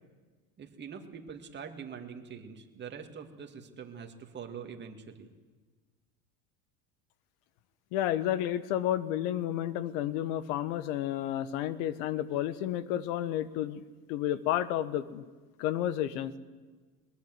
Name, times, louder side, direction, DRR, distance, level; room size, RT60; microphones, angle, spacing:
voice 1, 0.6-5.3, right 6 dB, 25° right, 4 dB, 2.3 m, -44 dB
voice 2, 7.9-13.8 14.1-15.2 15.6-16.4, left 12 dB, 65° left, 15 dB, 1.4 m, -31 dB
21.0 x 21.0 x 7.9 m, 1.4 s
supercardioid pair, 140°, 44 cm